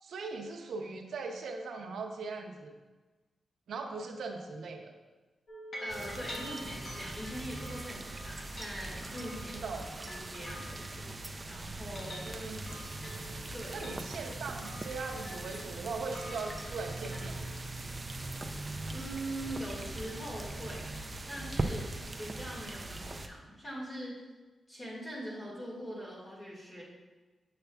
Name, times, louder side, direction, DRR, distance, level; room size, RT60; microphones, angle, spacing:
voice 1, 0.0-2.7 3.7-4.9 9.5-10.1 12.3-12.6 13.7-17.4, right 4 dB, 90° right, 3 dB, 0.6 m, -40 dB
sound 1, 5.5-11.4 11.8-17.5, left 1 dB, 50° left, 1.4 m, -48 dB
voice 2, 5.8-9.6 10.1-11.2 11.4-12.3 13.5-13.9 18.9-20.9 21.3-21.9 22.2-24.2 24.7-26.8, right 1 dB, 25° left, -5 dB, 1.8 m, -42 dB
sound 2, 5.9-23.3, right 2 dB, 25° right, 0.4 m, -40 dB
6.8 x 6.7 x 2.3 m, 1.2 s
wide cardioid pair, 135°, 0 cm